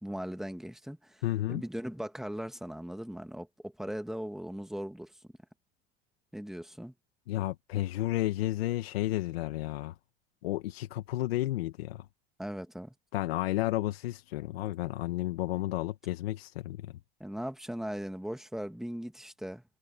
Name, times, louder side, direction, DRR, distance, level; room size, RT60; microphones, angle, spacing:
voice 1, 0.0-1.2 1.5-5.1 6.3-6.9 12.4-12.9 17.2-19.6, equal, ahead, 2.3 m, -39 dB
voice 2, 1.2-1.6 7.3-9.9 10.4-12.0 13.1-16.9, left 15 dB, 85° left, 1.5 m, -32 dB
hypercardioid pair, 90°, 29 cm